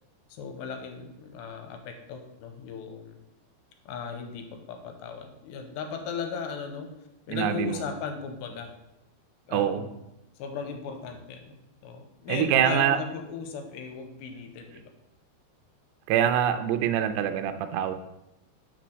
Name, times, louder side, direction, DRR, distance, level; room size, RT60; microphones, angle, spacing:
voice 1, 0.3-3.2 3.9-6.9 7.3-8.7 9.5-10.0 10.4-11.5 11.8-14.9, left 6 dB, 85° left, 5 dB, 2.8 m, -37 dB
voice 2, 7.3-7.8 9.5-9.9 12.3-13.0 16.1-18.0, right 10 dB, 80° right, 8 dB, 2.6 m, -24 dB
6.1 x 4.3 x 6.3 m, 0.90 s
omnidirectional pair, 5.1 m